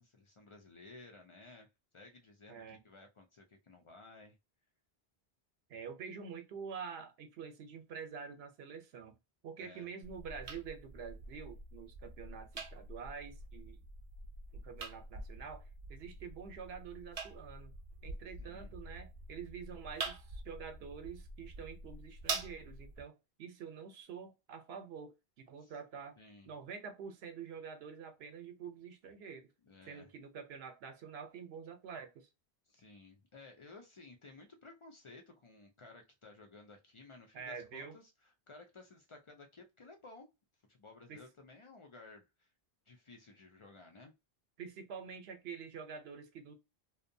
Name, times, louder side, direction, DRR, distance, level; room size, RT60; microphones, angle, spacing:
voice 1, 0.0-1.7 1.9-4.4 9.6-9.9 18.4-18.7 25.6-25.7 26.2-26.5 29.6-30.1 32.7-38.1 38.5-40.3 40.7-42.5 42.9-44.1, left 3 dB, 50° left, 0.3 m, -56 dB
voice 2, 2.5-2.8 5.7-9.2 9.4-13.8 14.5-17.7 18.0-26.2 26.4-29.5 29.9-32.3 37.3-38.0 41.1-41.2 44.6-46.5, right 6 dB, 80° right, 0.9 m, -47 dB
sound 1, 10.0-23.0, right 3 dB, 50° right, 0.5 m, -46 dB
2.6 x 2.1 x 2.6 m
omnidirectional pair, 1.0 m